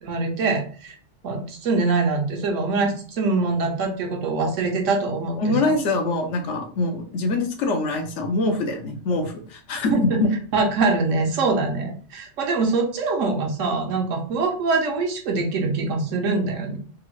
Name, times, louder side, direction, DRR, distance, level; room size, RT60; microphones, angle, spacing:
voice 1, 0.0-0.9 1.2-5.7 9.9-10.2 10.5-16.8, right 3 dB, 80° right, 2 dB, 1.1 m, -23 dB
voice 2, 5.4-9.9 10.2-10.3, left 2 dB, 75° left, 4 dB, 0.9 m, -24 dB
3.6 x 2.0 x 2.9 m, 0.43 s
omnidirectional pair, 1.3 m